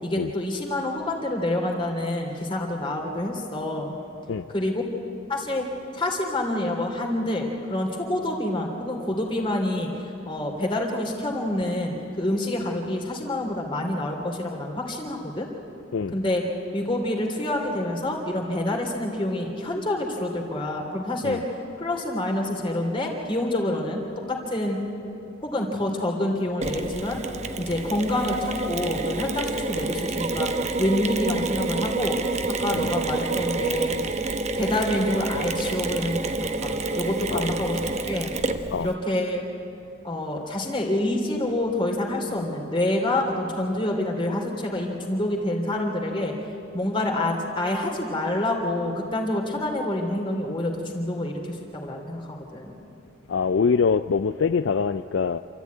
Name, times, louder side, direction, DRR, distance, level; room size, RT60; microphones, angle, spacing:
voice 1, 0.0-3.9 4.5-4.8 5.3-5.7 5.9-15.5 16.1-16.4 16.7-21.4 21.8-24.8 25.4-27.2 27.6-32.2 32.6-34.0 34.6-37.8 38.1-38.3 38.8-39.4 40.0-46.3 46.7-52.7, left 1 dB, 25° left, 0 dB, 2.9 m, -27 dB
Mechanisms, 26.6-38.9, right 3 dB, 35° right, 0.9 m, -28 dB
voice 2, 53.3-55.4, left 5 dB, 65° left, 11 dB, 0.4 m, -24 dB
27.5 x 13.5 x 9.4 m, 2.9 s
head